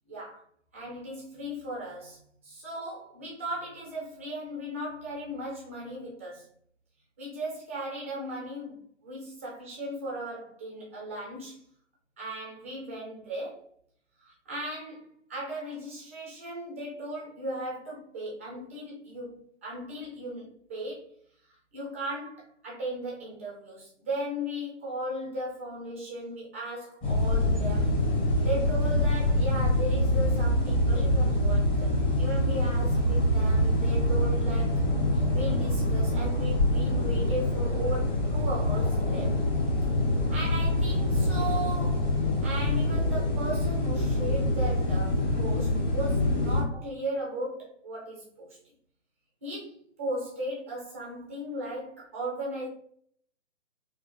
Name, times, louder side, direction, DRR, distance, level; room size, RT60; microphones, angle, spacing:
voice 1, 0.1-0.4 0.7-6.5 7.2-11.6 12.2-13.6 14.2-21.1 21.7-28.0 28.4-34.8 35.1-39.4 40.3-48.6 49.4-52.7, right 1 dB, 10° right, -3 dB, 0.4 m, -37 dB
sound 1, 27.0-46.6, left 1 dB, 20° left, 1.4 m, -25 dB
4.5 x 2.5 x 2.6 m, 0.62 s
figure-of-eight pair, 135°, 37 cm